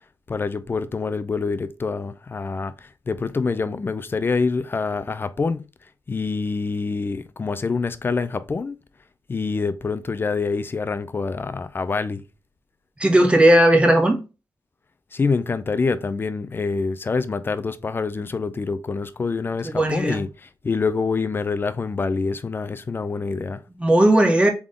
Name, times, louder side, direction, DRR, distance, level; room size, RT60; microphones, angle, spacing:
voice 1, 0.3-5.7 6.1-8.8 9.3-12.2 15.1-20.3 20.6-23.6, left 4 dB, 30° left, 0.4 m, -26 dB
voice 2, 13.0-14.2 19.6-20.2 23.8-24.5, right 1 dB, 15° right, 1.0 m, -16 dB
3.7 x 3.6 x 3.6 m
wide cardioid pair, 105°, 7 cm